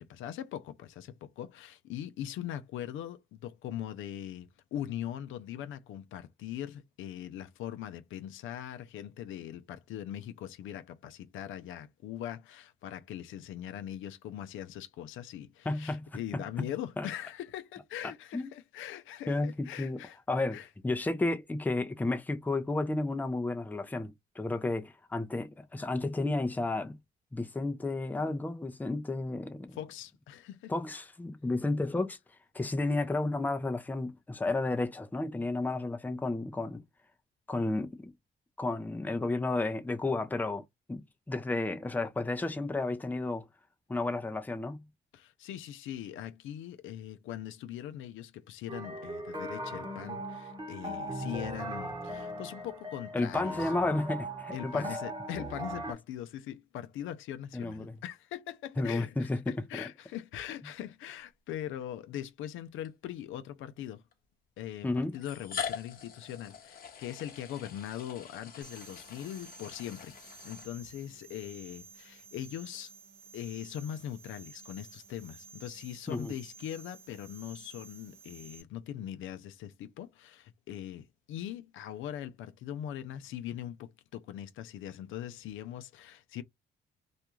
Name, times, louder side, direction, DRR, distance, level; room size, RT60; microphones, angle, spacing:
voice 1, 0.0-20.2 20.5-20.7 29.7-30.7 45.1-53.7 54.5-64.0 64.6-72.9 73.3-86.4, left 11 dB, 80° left, 0.5 m, -41 dB
voice 2, 15.7-16.4 17.0-17.1 18.3-18.5 19.3-20.0 20.3-20.6 20.8-27.0 27.3-29.8 30.7-32.2 32.5-36.8 37.5-38.1 38.6-43.5 43.9-44.8 53.1-55.0 57.5-57.9 58.8-59.9 64.8-65.1 76.1-76.3, left 2 dB, 10° left, 0.5 m, -32 dB
sound 1, 48.7-55.9, right 1 dB, 25° right, 1.0 m, -39 dB
sound 2, 62.8-62.9 64.1-64.2 65.1-71.1, left 7 dB, 50° left, 0.8 m, -43 dB
sound 3, 68.6-78.6, right 4 dB, 80° right, 0.9 m, -53 dB
2.4 x 2.2 x 2.9 m
cardioid pair, 90°, 20 cm